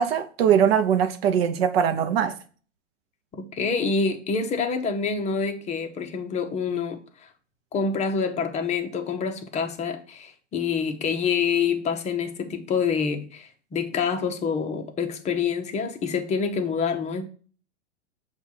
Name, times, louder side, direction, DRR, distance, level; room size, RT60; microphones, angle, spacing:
voice 1, 0.0-2.4, right 8 dB, 55° right, 0.6 m, -21 dB
voice 2, 3.3-7.3 7.7-17.2, left 5 dB, 20° left, 0.7 m, -27 dB
7.0 x 2.4 x 5.5 m
figure-of-eight pair, 105°, 37 cm